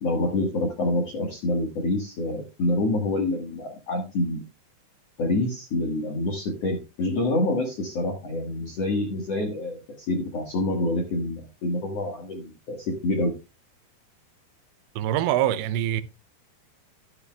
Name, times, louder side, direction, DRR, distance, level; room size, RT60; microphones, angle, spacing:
voice 1, 0.0-4.4 5.2-13.3, left 2 dB, 60° left, 1.6 m, -27 dB
voice 2, 15.0-16.0, right 12 dB, 85° right, 2.9 m, -24 dB
12.5 x 11.0 x 2.3 m
omnidirectional pair, 5.1 m